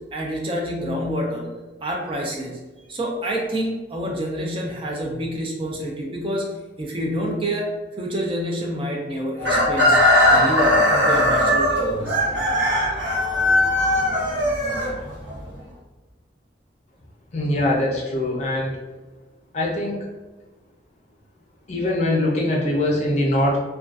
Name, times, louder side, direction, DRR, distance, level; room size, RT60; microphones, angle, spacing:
voice 1, 0.1-1.5 1.8-2.6 2.9-10.0 10.3-12.1, equal, 30° right, -1 dB, 0.4 m, -27 dB
Chicken rooster, 9.4-15.4, left 1 dB, 90° right, 0.8 m, -19 dB
voice 2, 17.3-18.8 19.5-20.1 21.7-23.6, left 1 dB, 40° left, -2 dB, 0.5 m, -22 dB
2.4 x 2.2 x 2.3 m, 1.2 s
head